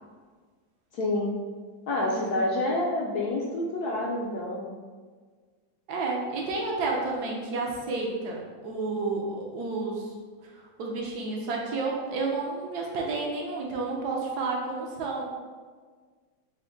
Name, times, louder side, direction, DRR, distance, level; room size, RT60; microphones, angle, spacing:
voice 1, 0.9-1.3 1.9-4.7, left 2 dB, 70° left, -3 dB, 0.9 m, -28 dB
voice 2, 2.0-2.5 5.9-10.1 10.4-15.2, right 3 dB, 65° right, -1 dB, 1.2 m, -31 dB
5.8 x 2.1 x 3.8 m, 1.5 s
omnidirectional pair, 2.1 m